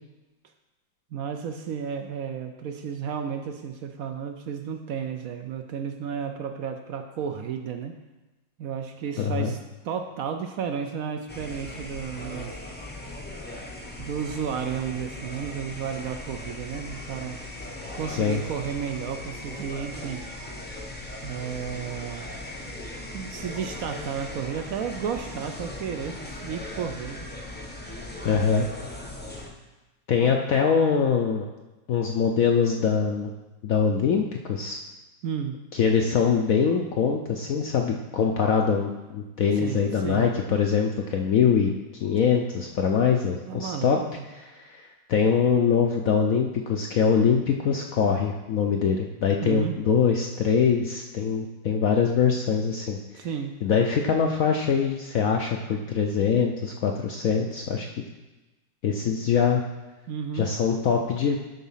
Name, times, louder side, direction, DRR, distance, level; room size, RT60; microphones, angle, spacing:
voice 1, 1.1-7.9 8.6-9.6 9.8-12.5 14.0-17.7 17.9-20.2 21.2-22.3 23.1-27.3 30.2-30.4 35.2-35.6 39.6-40.3 43.5-44.2 49.4-49.7 53.1-53.6 60.1-60.5, right 7 dB, 75° right, 6 dB, 0.8 m, -33 dB
voice 2, 9.2-9.5 18.1-18.4 28.2-28.7 30.1-31.4 31.9-33.3 33.6-34.8 35.7-41.7 42.0-44.0 44.5-53.0 53.6-57.9 58.8-59.6 60.3-61.4, left 6 dB, 70° left, 2 dB, 0.8 m, -23 dB
sound 1, 11.3-29.5, left 1 dB, 15° left, 0.3 m, -38 dB
12.0 x 4.1 x 5.5 m, 1.1 s
omnidirectional pair, 2.1 m